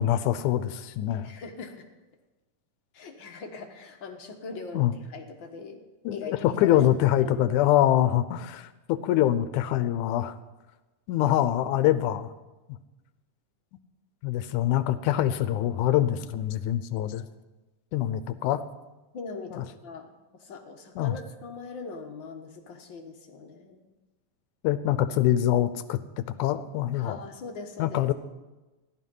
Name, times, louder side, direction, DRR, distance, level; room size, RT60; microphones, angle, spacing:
voice 1, 0.0-1.3 4.7-4.9 6.1-10.4 11.1-12.3 14.2-17.3 17.9-18.6 19.5-19.6 21.0-21.2 24.6-26.0 26.4-27.2 27.8-28.1, left 12 dB, 80° left, 13 dB, 2.1 m, -24 dB
voice 2, 1.2-1.9 2.9-5.8 6.1-6.3 6.6-6.8 7.2-7.3 19.1-20.1 20.3-23.9 26.9-28.0, left 4 dB, 50° left, 3 dB, 1.5 m, -41 dB
15.0 x 11.5 x 5.5 m, 1.1 s
omnidirectional pair, 3.6 m